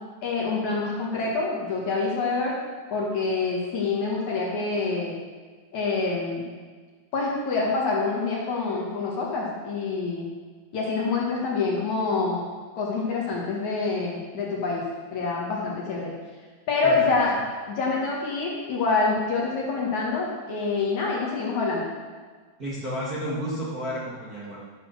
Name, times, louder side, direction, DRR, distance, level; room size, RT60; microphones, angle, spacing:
voice 1, 0.2-2.5 2.9-5.2 5.7-6.5 7.1-10.3 10.7-12.4 12.8-14.8 15.1-16.1 16.7-17.3 17.7-21.9, left 4 dB, 55° left, -3 dB, 2.4 m, -26 dB
voice 2, 16.8-17.2 22.6-24.6, equal, 50° right, -6 dB, 1.0 m, -31 dB
12.5 x 7.4 x 6.5 m, 1.5 s
omnidirectional pair, 5.0 m